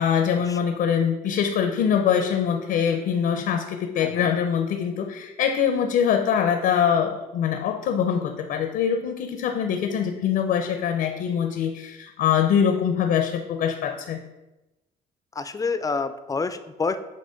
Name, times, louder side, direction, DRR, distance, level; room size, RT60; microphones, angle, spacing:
voice 1, 0.0-14.2, left 8 dB, 70° left, 5 dB, 0.7 m, -23 dB
voice 2, 15.4-17.0, left 4 dB, 20° left, 11 dB, 0.5 m, -28 dB
7.9 x 3.1 x 5.1 m, 1.0 s
cardioid pair, 110°, 17 cm